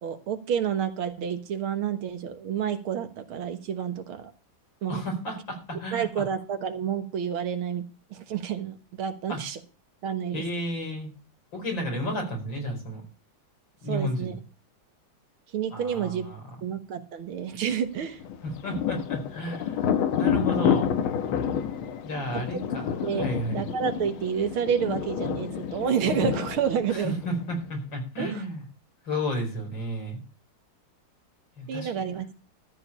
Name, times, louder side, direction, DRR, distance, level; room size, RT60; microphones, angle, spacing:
voice 1, 0.0-4.3 4.8-5.0 5.9-7.8 8.1-9.6 10.0-10.4 13.9-14.3 15.5-16.3 16.6-18.2 22.5-22.6 23.0-27.2 28.2-28.4 31.7-32.3, right 8 dB, 85° right, 9 dB, 2.2 m, -29 dB
voice 2, 4.9-6.2 9.3-9.4 10.3-11.1 11.5-13.0 13.8-14.4 15.7-16.4 18.4-20.9 22.0-23.6 26.9-28.6 29.1-30.2 31.6-32.2, equal, 65° left, 2 dB, 5.4 m, -32 dB
Thunder, 18.2-27.7, left 8 dB, 80° left, 1.9 m, -29 dB
13.5 x 4.9 x 8.5 m, 0.33 s
omnidirectional pair, 2.3 m